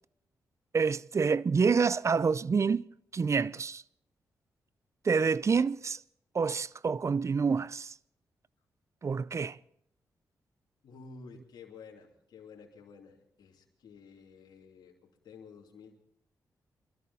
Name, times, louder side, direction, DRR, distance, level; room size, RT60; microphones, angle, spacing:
voice 1, 0.7-2.8 3.1-3.8 5.0-6.0 6.3-7.9 9.0-9.6, right 5 dB, 40° right, 0.5 m, -27 dB
voice 2, 10.8-16.0, left 5 dB, 70° left, 2.9 m, -52 dB
23.0 x 13.5 x 4.1 m
supercardioid pair, 55°, 7 cm